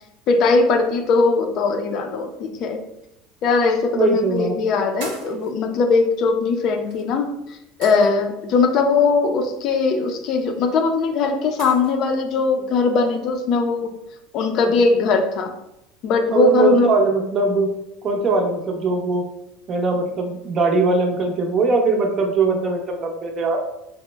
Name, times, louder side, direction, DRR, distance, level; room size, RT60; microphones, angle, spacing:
voice 1, 0.3-2.8 3.4-7.3 7.8-13.9 14.3-15.5 16.0-16.9, left 4 dB, 50° left, 5 dB, 0.4 m, -20 dB
sound 1, 3.0-3.1 4.2-4.4 5.0-5.5 6.9-7.0 7.8-8.4 10.4-10.5 11.6-11.9, right 3 dB, 75° right, 0.9 m, -37 dB
voice 2, 3.9-4.6 16.3-17.7 18.0-19.3 19.7-23.6, right 3 dB, 35° right, 2 dB, 0.6 m, -20 dB
2.9 x 2.0 x 3.3 m, 0.83 s
supercardioid pair, 130°, 0 cm